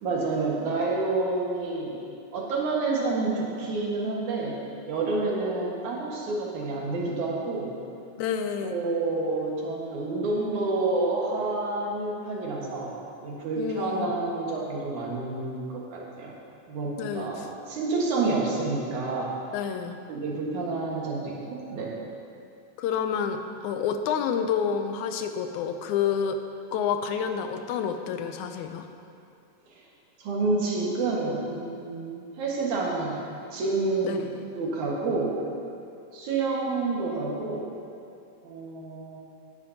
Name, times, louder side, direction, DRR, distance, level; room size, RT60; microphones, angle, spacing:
voice 1, 0.0-2.0 2.3-4.6 4.9-7.7 8.6-12.9 13.2-16.3 16.7-19.4 20.1-21.9 30.2-33.2 33.5-34.3 34.6-35.4 36.1-37.7 38.4-39.2, right 3 dB, 80° right, -3 dB, 3.0 m, -29 dB
voice 2, 8.2-8.7 13.6-14.1 17.0-17.5 19.5-20.0 22.8-26.4 26.7-28.9 34.0-34.4, left 7 dB, 85° left, 7 dB, 2.0 m, -29 dB
16.0 x 9.8 x 2.8 m, 2.5 s
omnidirectional pair, 3.4 m